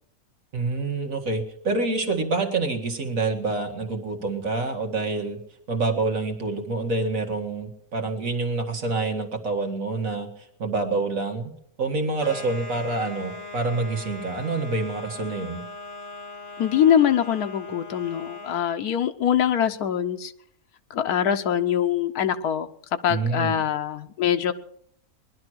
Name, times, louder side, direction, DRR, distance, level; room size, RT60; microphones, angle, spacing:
voice 1, 0.5-5.4 5.7-10.3 10.6-11.5 11.8-15.6 23.1-23.6, right 3 dB, 60° right, 4 dB, 2.0 m, -27 dB
sound 1, 12.2-18.7, left 2 dB, 35° left, 2.9 m, -39 dB
voice 2, 16.6-20.3 20.9-22.7 23.0-24.5, left 9 dB, 85° left, 7 dB, 1.4 m, -23 dB
20.0 x 11.5 x 6.3 m, 0.68 s
omnidirectional pair, 1.6 m